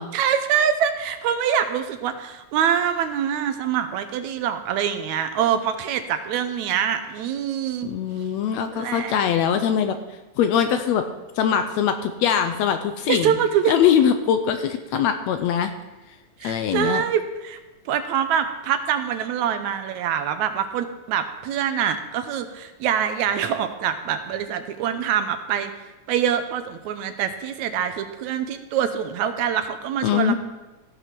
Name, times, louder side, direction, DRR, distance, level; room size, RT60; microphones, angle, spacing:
voice 1, 0.1-7.9 8.7-9.2 13.1-13.7 14.9-15.0 16.4-17.6 17.9-25.7 26.1-30.4, right 8 dB, 80° right, 8 dB, 2.0 m, -25 dB
voice 2, 7.8-10.0 10.4-11.0 11.4-13.4 13.7-15.7 16.4-17.0 30.0-30.4, left 8 dB, 75° left, 8 dB, 1.7 m, -22 dB
15.0 x 5.7 x 6.0 m, 1.1 s
omnidirectional pair, 3.5 m